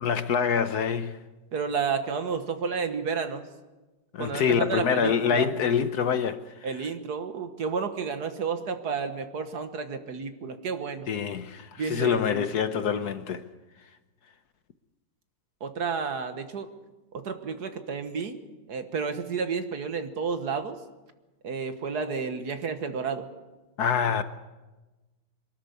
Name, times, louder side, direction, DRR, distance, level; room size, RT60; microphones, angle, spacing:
voice 1, 0.0-1.2 4.1-6.4 11.1-13.4 23.8-24.2, left 7 dB, 60° left, 1.3 m, -25 dB
voice 2, 1.5-3.4 4.2-5.5 6.6-11.1 11.8-12.5 15.6-16.7 17.1-18.4 18.7-20.8 21.4-23.3, right 5 dB, 60° right, 1.8 m, -31 dB
23.0 x 13.0 x 9.7 m
omnidirectional pair, 2.0 m